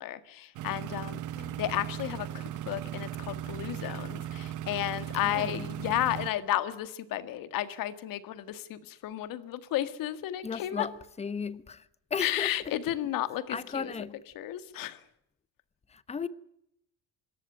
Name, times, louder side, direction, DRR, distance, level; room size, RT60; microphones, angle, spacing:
voice 1, 0.0-1.2 1.6-10.9 12.2-13.9 14.3-15.0, left 13 dB, 60° left, 1.9 m, -33 dB
sound 1, 0.6-6.3, right 11 dB, 55° right, 1.1 m, -37 dB
voice 2, 5.2-5.7 10.4-10.9 11.2-11.8 12.1-12.5 13.5-14.2 15.9-16.3, left 6 dB, 15° left, 0.9 m, -35 dB
25.5 x 14.0 x 9.1 m
cardioid pair, 165°, 38 cm